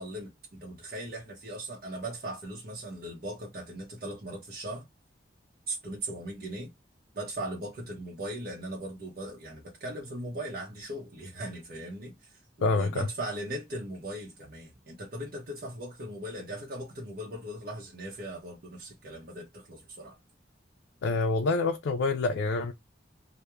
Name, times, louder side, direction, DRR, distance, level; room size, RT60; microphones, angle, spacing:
voice 1, 0.0-4.9 5.7-6.7 7.1-20.2, right 1 dB, 50° right, 0.7 m, -39 dB
voice 2, 12.6-13.1 21.0-22.7, left 3 dB, 85° left, 0.4 m, -27 dB
2.3 x 2.1 x 2.9 m
head